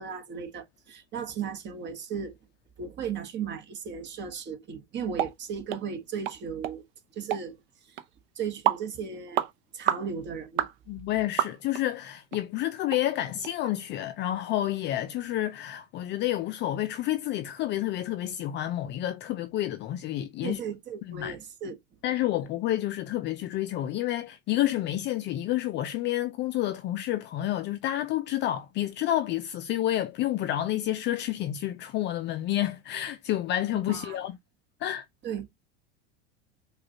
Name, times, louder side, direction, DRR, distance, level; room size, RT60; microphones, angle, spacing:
voice 1, 0.0-2.4 2.8-6.8 7.1-7.6 7.9-8.0 8.4-9.4 9.7-10.7 20.4-21.8 33.7-34.2 35.2-35.5, right 6 dB, 35° right, 1.2 m, -36 dB
sound 1, 5.2-5.3 5.7-5.8 6.3-6.4 6.6-6.8 7.3-7.4 8.0-8.1 8.7-8.8 9.3-9.5 9.9-10.1 10.6-10.7 11.4-11.8 12.3-12.4 12.9-13.0 13.4-13.5, right 12 dB, 55° right, 0.6 m, -27 dB
voice 2, 10.9-20.6 21.0-21.4 22.0-34.4 34.8-35.0, left 13 dB, 35° left, 0.4 m, -29 dB
4.8 x 2.4 x 2.7 m
hypercardioid pair, 90°, 32 cm